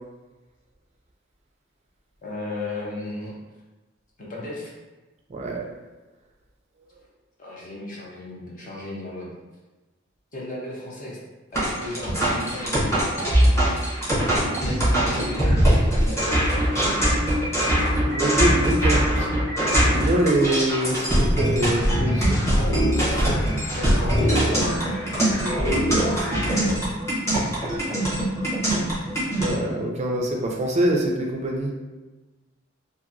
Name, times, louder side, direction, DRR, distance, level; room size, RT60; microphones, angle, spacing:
voice 1, 2.2-3.4 4.2-4.7 7.4-9.3 10.3-11.2 11.5-17.0 22.9-24.8 25.2-25.6 26.0-26.8, left 1 dB, 45° left, -4 dB, 0.8 m, -35 dB
voice 2, 5.3-5.7 18.0-19.3 19.9-22.4 29.4-31.7, right 1 dB, 35° right, 0 dB, 0.3 m, -24 dB
sound 1, 11.5-29.5, equal, 15° left, 0.9 m, -22 dB
sound 2, 21.7-26.7, equal, 85° left, 0.8 m, -27 dB
2.8 x 2.6 x 2.5 m, 1.2 s
head